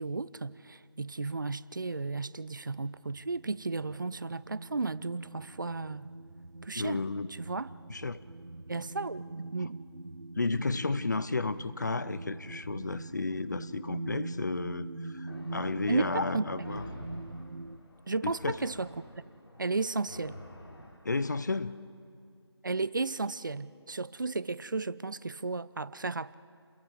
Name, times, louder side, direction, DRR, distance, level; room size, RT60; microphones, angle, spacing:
voice 1, 0.0-6.1 6.6-7.7 8.7-9.8 15.9-16.5 18.1-18.9 19.6-20.4 22.6-26.3, right 3 dB, 45° right, 0.5 m, -34 dB
sound 1, 2.9-17.8, right 2 dB, 75° right, 0.9 m, -43 dB
voice 2, 6.8-7.3 7.9-8.2 10.4-16.8 18.2-18.5 21.0-21.9, left 3 dB, 40° left, 0.6 m, -32 dB
sound 2, 15.3-21.7, left 1 dB, 65° left, 3.5 m, -49 dB
29.5 x 22.0 x 4.8 m
figure-of-eight pair, 165°, 15 cm